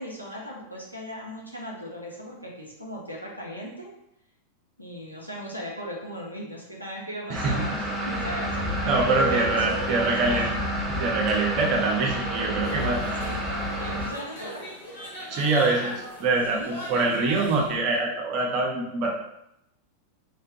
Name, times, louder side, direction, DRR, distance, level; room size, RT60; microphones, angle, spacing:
voice 1, 0.0-3.9 4.8-10.4 13.0-14.7 16.5-16.7, equal, 90° left, -4 dB, 0.7 m, -38 dB
sound 1, 7.3-14.1, equal, 5° right, 0.7 m, -29 dB
voice 2, 7.3-7.7 8.9-10.5 10.9-13.0 15.3-19.1, right 3 dB, 40° right, 0 dB, 0.7 m, -24 dB
sound 2, 12.6-17.8, equal, 65° left, 1.0 m, -39 dB
3.3 x 2.1 x 2.8 m, 0.81 s
figure-of-eight pair, 90°, 0 cm